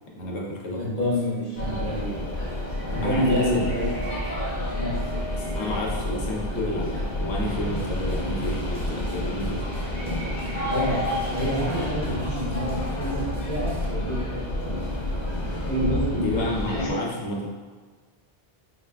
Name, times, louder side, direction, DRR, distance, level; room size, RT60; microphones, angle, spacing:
voice 1, 0.1-1.1 3.0-3.7 5.4-9.6 16.1-17.5, left 1 dB, 85° left, -1 dB, 1.0 m, -31 dB
voice 2, 0.7-2.6 2.9-3.9 4.8-5.0 10.7-14.7 15.4-17.0, equal, 45° right, -10 dB, 0.8 m, -28 dB
sound 1, 1.0-11.9, right 1 dB, 70° right, 1.2 m, -46 dB
sound 2, 1.6-16.9, left 1 dB, 45° left, 0.8 m, -29 dB
sound 3, 7.7-13.9, right 2 dB, 5° right, 0.7 m, -44 dB
4.1 x 3.4 x 2.2 m, 1.4 s
omnidirectional pair, 1.1 m